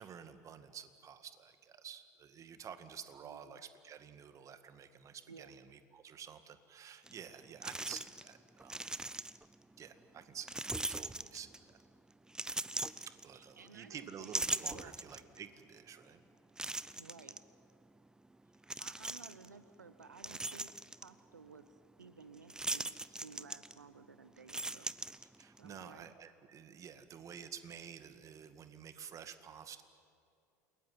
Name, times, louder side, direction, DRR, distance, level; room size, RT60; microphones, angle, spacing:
voice 1, 0.0-8.8 9.8-11.5 13.2-16.2 25.4-29.8, right 8 dB, 35° right, 10 dB, 1.9 m, -50 dB
voice 2, 3.2-3.6 5.3-5.5 13.3-15.0 17.0-17.4 18.8-20.7 21.0-24.9 25.6-26.1, right 5 dB, 85° right, 12 dB, 1.1 m, -56 dB
sound 1, 7.1-7.2 7.6-8.3 8.6-9.5 10.5-11.7 12.3-13.7 14.1-15.4 15.9-16.0 16.6-17.4 18.6-19.5 19.9-21.1 22.5-24.0 24.3-25.6, right 2 dB, 5° right, 0.8 m, -40 dB
29.0 x 21.5 x 9.7 m, 2.4 s
figure-of-eight pair, 75°, 9 cm